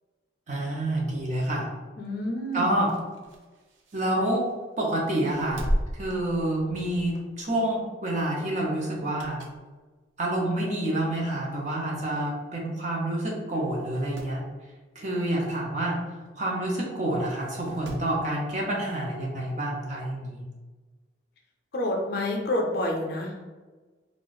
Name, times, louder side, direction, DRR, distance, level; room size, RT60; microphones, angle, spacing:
voice 1, 0.5-1.7 2.5-2.9 3.9-4.4 4.8-5.7 5.9-9.4 10.2-14.4 15.0-16.0 16.4-20.4, right 1 dB, 40° right, -3 dB, 0.7 m, -28 dB
voice 2, 2.0-3.0 21.7-23.4, left 1 dB, 55° left, 1 dB, 0.5 m, -28 dB
sound 1, 2.8-4.7 5.1-7.0 7.4-7.6 8.9-9.7 10.2-10.3 11.1-11.2 11.5-11.6 11.8-11.9 12.7-12.9 13.2-13.3 13.7-14.4 16.2-16.3 17.4-18.2 19.5-19.6, equal, 80° right, 0.5 m, -36 dB
2.5 x 2.4 x 3.9 m, 1.3 s
head